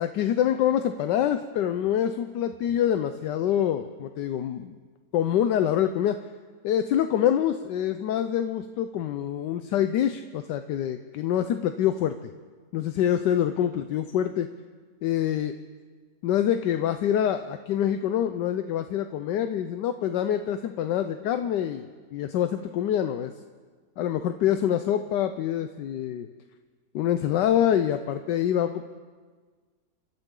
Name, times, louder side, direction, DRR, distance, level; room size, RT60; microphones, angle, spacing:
voice 1, 0.0-4.8 5.1-6.2 6.6-12.1 12.7-14.5 15.0-15.5 16.2-23.3 24.0-26.3 26.9-28.8, left 10 dB, 80° left, 9 dB, 1.3 m, -25 dB
29.5 x 13.0 x 3.8 m, 1.5 s
omnidirectional pair, 1.9 m